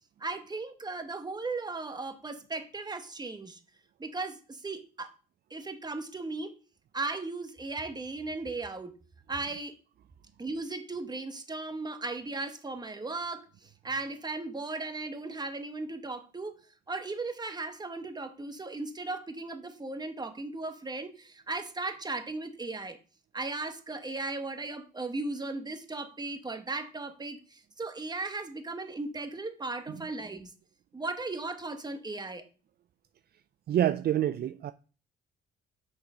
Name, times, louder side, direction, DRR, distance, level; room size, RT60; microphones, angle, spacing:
voice 1, 0.2-3.6 4.0-5.1 5.5-6.5 6.9-8.9 9.3-9.7 10.4-23.0 23.3-30.5 30.9-32.4, right 3 dB, 20° right, 1.3 m, -37 dB
voice 2, 33.7-34.7, right 11 dB, 55° right, 0.4 m, -27 dB
6.2 x 6.1 x 5.0 m
cardioid pair, 90°, 20 cm